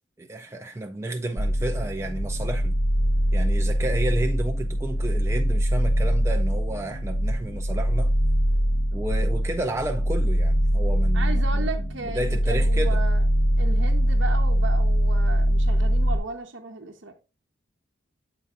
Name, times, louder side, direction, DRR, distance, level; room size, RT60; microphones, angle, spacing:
voice 1, 0.2-2.8 3.3-8.1 8.9-11.7 12.1-13.0, right 1 dB, 15° right, 0.3 m, -31 dB
sound 1, 1.4-16.2, equal, 80° left, 1.8 m, -22 dB
voice 2, 11.1-13.2 13.6-17.1, right 3 dB, 75° right, 0.8 m, -35 dB
8.3 x 3.8 x 3.8 m
head